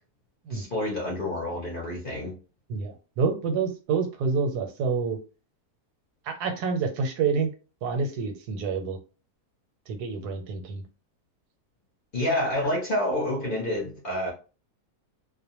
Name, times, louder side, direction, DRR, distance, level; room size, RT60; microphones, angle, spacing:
voice 1, 0.5-2.3 12.1-14.3, left 1 dB, 50° left, 0.6 m, -28 dB
voice 2, 2.7-5.2 6.2-7.5 7.8-9.0 9.9-10.8, right 5 dB, 85° right, 1.1 m, -28 dB
2.4 x 2.1 x 2.8 m
omnidirectional pair, 1.6 m